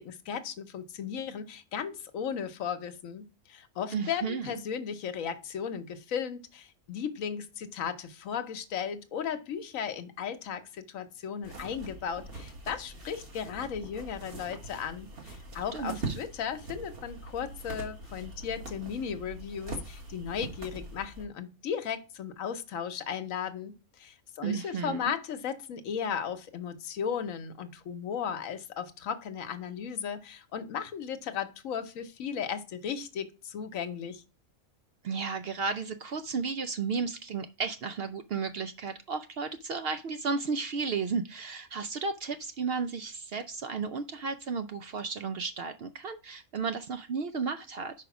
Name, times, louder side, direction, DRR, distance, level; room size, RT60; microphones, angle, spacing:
voice 1, 0.0-34.2, left 7 dB, 75° left, 10 dB, 1.2 m, -36 dB
voice 2, 3.9-4.6 15.7-16.2 24.4-25.1 35.0-47.9, right 5 dB, 60° right, 9 dB, 0.6 m, -33 dB
sound 1, 11.4-21.3, right 2 dB, 45° right, 1.7 m, -42 dB
5.1 x 4.8 x 5.9 m, 0.32 s
omnidirectional pair, 1.4 m